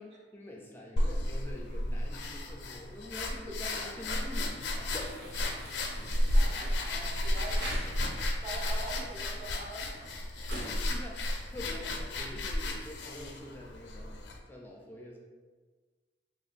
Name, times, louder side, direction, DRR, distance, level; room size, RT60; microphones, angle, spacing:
voice 1, 0.0-5.2 10.4-15.2, left 1 dB, 10° left, -2 dB, 0.4 m, -45 dB
sound 1, 1.0-14.4, left 1 dB, 70° left, 0.5 m, -33 dB
sound 2, 4.9-12.1, right 1 dB, 75° right, 0.7 m, -47 dB
voice 2, 6.0-10.5, right 2 dB, 35° right, -4 dB, 0.6 m, -45 dB
2.6 x 2.5 x 4.1 m, 1.4 s
head